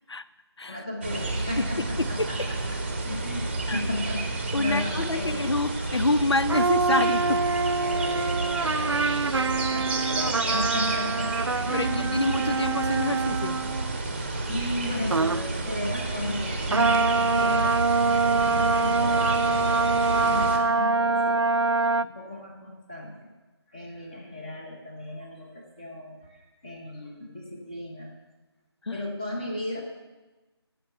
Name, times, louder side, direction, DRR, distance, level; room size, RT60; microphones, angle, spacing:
voice 1, 0.7-2.6 3.0-5.6 7.7-11.3 11.6-12.1 14.3-17.7 18.3-21.6 22.0-23.3 23.7-28.2 28.9-29.8, left 1 dB, 15° left, -1 dB, 0.9 m, -35 dB
sound 1, 1.0-20.6, right 2 dB, 25° right, 0.9 m, -31 dB
voice 2, 1.6-2.1 3.7-3.8 4.5-7.4 11.7-11.9 12.1-13.6 28.9-29.0, left 2 dB, 70° left, 14 dB, 0.6 m, -27 dB
sound 2, 6.5-14.0 15.1-15.5 16.7-22.0, right 4 dB, 70° right, 0.5 m, -25 dB
15.5 x 5.8 x 6.6 m, 1.2 s
figure-of-eight pair, 170°, 14 cm